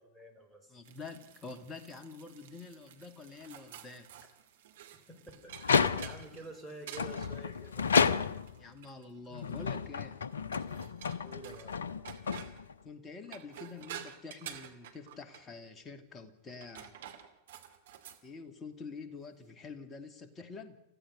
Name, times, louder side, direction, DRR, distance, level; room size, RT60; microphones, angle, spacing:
voice 1, 0.0-0.8 5.1-7.8 11.2-11.8, right 2 dB, ahead, 3 dB, 4.9 m, -49 dB
voice 2, 0.7-4.4 8.6-10.2 12.8-17.0 18.2-20.8, left 4 dB, 20° left, 8 dB, 2.5 m, -47 dB
sound 1, 0.8-9.8 10.5-11.8 12.0-12.7 13.2-15.5 16.5-18.2, right 10 dB, 60° right, 2.4 m, -50 dB
sound 2, 5.5-6.4 7.0-8.6 9.3-12.9, left 5 dB, 70° left, 0.8 m, -31 dB
28.5 x 15.5 x 6.6 m, 0.88 s
figure-of-eight pair, 90°, 0 cm